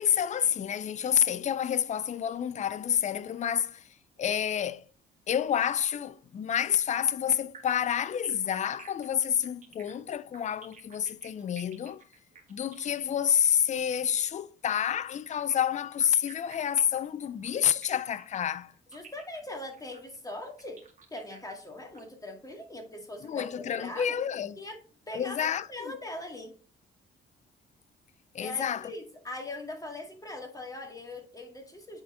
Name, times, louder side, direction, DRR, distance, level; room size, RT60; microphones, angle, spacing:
voice 1, 0.0-3.9 4.2-4.8 5.3-12.0 12.5-18.7 23.2-24.6 25.1-25.9 28.3-28.9, left 9 dB, 35° left, 0.4 m, -29 dB
sound 1, 7.3-14.1 15.3-22.0, right 5 dB, 40° right, 2.0 m, -53 dB
voice 2, 18.9-20.8 21.1-24.2 24.6-24.8 25.1-26.5 28.4-32.0, left 1 dB, 15° left, 2.0 m, -41 dB
8.8 x 4.2 x 3.7 m
cardioid pair, 90°, 20 cm